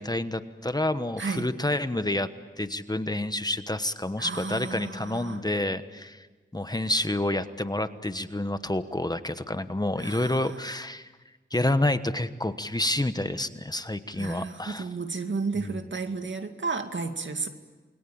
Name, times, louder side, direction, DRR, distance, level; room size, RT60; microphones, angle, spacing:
voice 1, 0.0-2.3 2.6-6.3 6.5-11.1 11.5-14.9 15.6-15.8, left 1 dB, 20° left, 11 dB, 1.2 m, -29 dB
voice 2, 1.2-1.5 4.2-5.4 10.0-10.5 14.1-17.5, right 4 dB, 65° right, 6 dB, 2.2 m, -33 dB
28.5 x 22.0 x 8.7 m, 1.3 s
wide cardioid pair, 60°, 21 cm